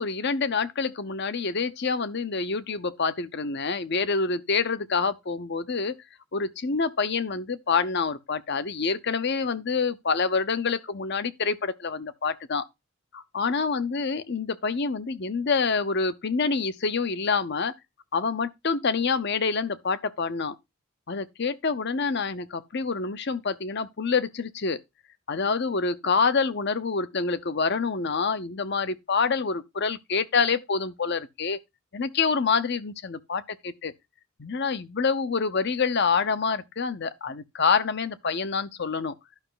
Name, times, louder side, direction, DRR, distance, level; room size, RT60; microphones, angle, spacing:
voice 1, 0.0-6.0 6.3-12.6 13.1-17.7 18.1-20.5 21.1-24.8 25.3-31.6 31.9-33.9 34.4-39.1, left 5 dB, 50° left, 0.7 m, -27 dB
11.5 x 5.7 x 3.8 m
head